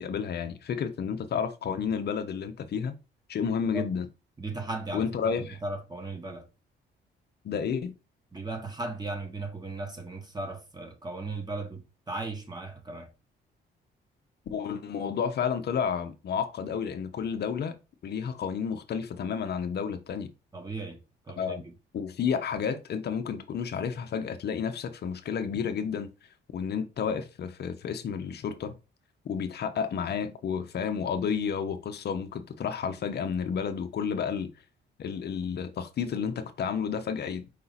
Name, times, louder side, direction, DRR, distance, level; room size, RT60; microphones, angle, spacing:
voice 1, 0.0-2.9 3.3-4.1 4.9-5.6 7.4-7.9 14.5-17.8 18.0-20.3 21.4-21.6 21.9-26.1 26.5-28.7 29.2-34.5 35.0-37.5, left 7 dB, 55° left, 0.6 m, -31 dB
voice 2, 4.4-5.3 5.6-6.5 8.3-11.8 12.1-13.1 20.5-21.0 21.3-21.7, right 2 dB, 20° right, 1.2 m, -36 dB
4.9 x 2.8 x 4.0 m
cardioid pair, 90°, 20 cm